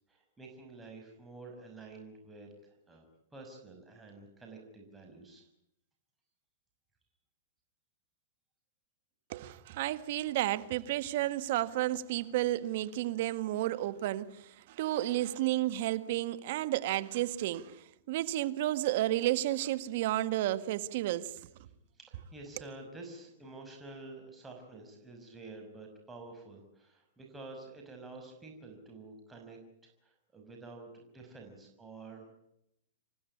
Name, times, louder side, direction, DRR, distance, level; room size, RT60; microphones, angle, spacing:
voice 1, 0.1-3.1 3.3-5.5 22.0-32.3, right 3 dB, 10° right, 5.8 m, -49 dB
voice 2, 9.3-21.3, right 15 dB, 60° right, 1.6 m, -32 dB
28.0 x 15.5 x 9.8 m
hypercardioid pair, 125°, 0 cm